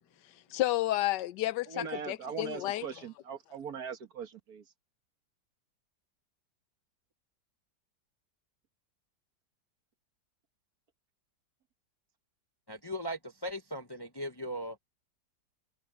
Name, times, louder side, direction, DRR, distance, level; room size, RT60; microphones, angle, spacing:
voice 1, 0.5-2.9, left 15 dB, 75° left, 1.3 m, -31 dB
voice 2, 1.7-4.6, right 6 dB, 55° right, 2.0 m, -40 dB
voice 3, 12.7-14.8, equal, 30° left, 0.4 m, -38 dB
omnidirectional pair, 1.9 m